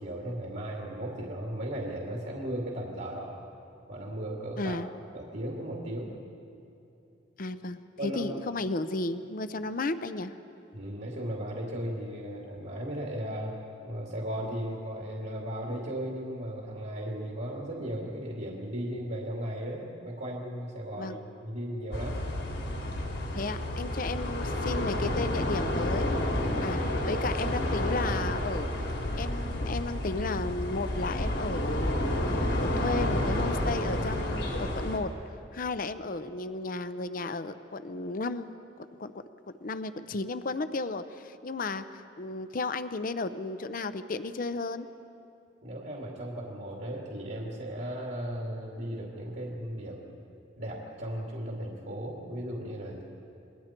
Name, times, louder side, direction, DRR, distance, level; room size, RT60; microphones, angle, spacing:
voice 1, 0.0-3.3 3.9-4.8 5.1-6.1 8.0-8.2 10.7-13.5 13.8-22.2 45.6-50.1 50.5-53.0, right 1 dB, 65° right, -2 dB, 2.6 m, -36 dB
voice 2, 4.6-4.9 7.4-10.3 21.0-21.2 23.3-26.1 26.6-28.7 29.2-32.1 32.6-35.1 35.5-38.5 38.8-39.1 39.6-44.9, left 3 dB, 50° left, 11 dB, 0.7 m, -34 dB
sound 1, 21.9-35.0, left 1 dB, 80° left, 3.4 m, -30 dB
28.0 x 21.0 x 4.5 m, 2.8 s
head